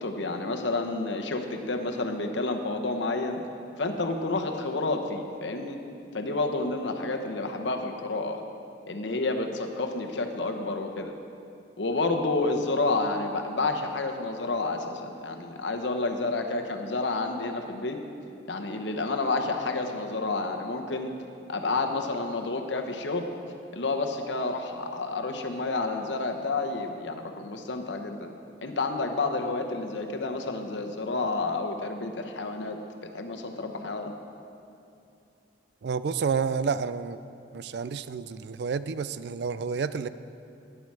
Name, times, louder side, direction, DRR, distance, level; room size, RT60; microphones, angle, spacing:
voice 1, 0.0-3.4 3.8-5.8 6.1-8.4 8.9-11.1 11.8-18.0 18.5-21.1 21.5-23.3 23.7-28.3 28.6-32.8 33.1-34.1, left 3 dB, 75° left, 4 dB, 0.9 m, -30 dB
voice 2, 35.8-37.2 37.5-40.1, right 5 dB, 60° right, 14 dB, 0.3 m, -30 dB
11.5 x 10.0 x 4.7 m, 2.6 s
head